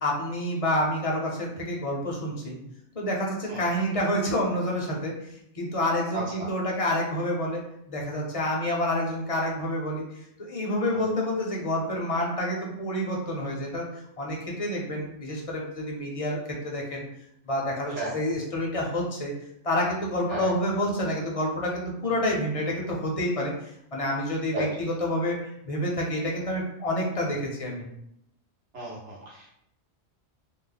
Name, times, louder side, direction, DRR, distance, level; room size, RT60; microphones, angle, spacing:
voice 1, 0.0-2.6 2.9-7.6 7.9-16.4 16.6-17.0 17.4-19.3 19.6-27.8, left 1 dB, 35° left, -2 dB, 0.7 m, -28 dB
voice 2, 6.1-6.5 10.9-11.0 17.9-18.1 20.3-20.5 24.5-24.7 28.7-29.6, right 2 dB, 80° right, -6 dB, 1.5 m, -34 dB
3.1 x 2.1 x 3.9 m, 0.77 s
omnidirectional pair, 1.2 m